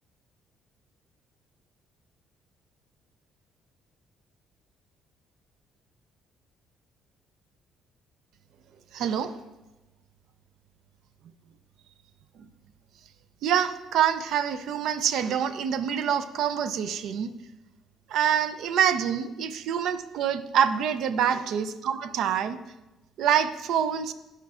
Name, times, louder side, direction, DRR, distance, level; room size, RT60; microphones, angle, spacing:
voice 1, 8.9-9.4 13.4-17.3 18.1-22.6 23.2-24.1, right 8 dB, 75° right, 12 dB, 0.4 m, -26 dB
12.5 x 4.4 x 2.4 m, 1.1 s
cardioid pair, 95°, 0 cm